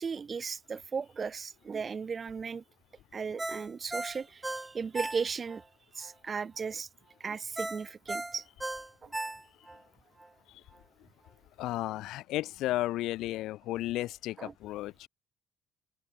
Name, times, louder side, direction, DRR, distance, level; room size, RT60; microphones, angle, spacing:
voice 1, 0.0-2.6 3.1-5.6 5.9-6.9 7.2-8.5 9.0-9.1 14.4-14.5, right 5 dB, 25° right, 1.2 m, -36 dB
Ringtone, 3.4-5.6 6.0-6.1 7.6-9.8 10.2-10.3, right 2 dB, 10° right, 0.9 m, -36 dB
voice 2, 11.6-15.1, left 16 dB, 80° left, 0.5 m, -34 dB
open air
cardioid pair, 175°, 0 cm